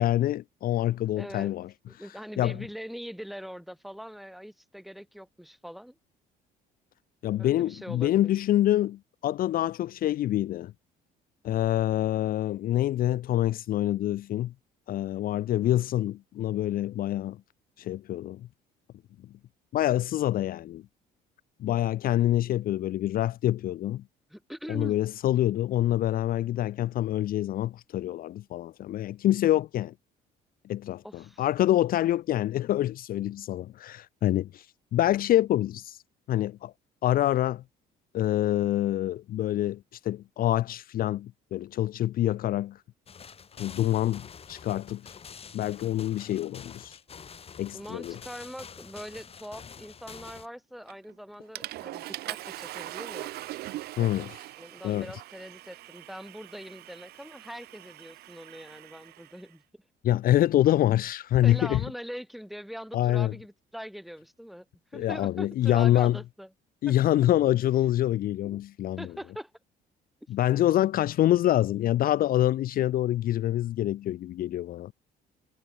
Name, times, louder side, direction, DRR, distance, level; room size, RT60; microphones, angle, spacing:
voice 1, 0.0-1.7 2.4-2.6 7.2-10.7 11.4-14.5 14.9-17.4 17.8-18.5 19.7-20.8 21.6-24.0 24.7-29.9 30.7-34.7 34.9-36.0 36.3-36.7 37.0-37.6 38.1-42.8 43.6-45.2 45.5-47.0 47.6-48.2 54.0-54.4 54.8-55.1 60.0-61.8 62.9-63.3 64.9-66.2 66.8-69.1 70.3-74.9, left 13 dB, 60° left, 0.7 m, -26 dB
voice 2, 1.2-1.5 1.9-6.0 7.4-8.3 24.3-25.0 31.0-31.4 47.7-53.3 54.6-59.6 61.4-64.7 64.9-66.5 66.9-67.0 69.0-69.5, equal, ahead, 3.6 m, -42 dB
sound 1, 43.1-50.5, left 6 dB, 35° left, 3.2 m, -47 dB
Water / Toilet flush, 50.9-51.1 51.5-59.4, right 16 dB, 70° right, 0.6 m, -41 dB
cardioid pair, 110°, 17 cm